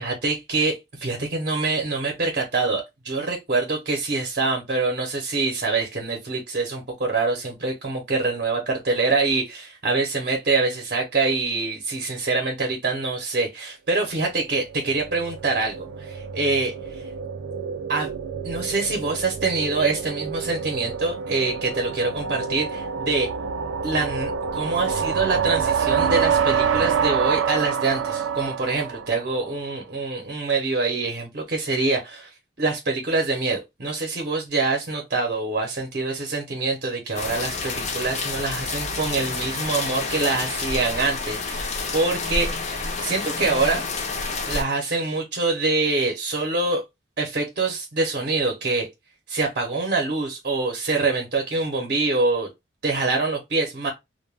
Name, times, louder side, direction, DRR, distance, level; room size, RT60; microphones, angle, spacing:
voice 1, 0.0-17.0 17.9-18.1 18.4-23.3 23.8-32.3 32.6-43.8 44.5-46.8 47.2-48.9 49.3-52.5 52.8-53.9, right 3 dB, 45° right, 0.6 m, -25 dB
sound 1, 14.3-29.6, right 7 dB, 85° right, 0.3 m, -27 dB
sound 2, 37.1-44.6, left 4 dB, 35° left, 0.5 m, -29 dB
2.2 x 2.1 x 3.2 m
head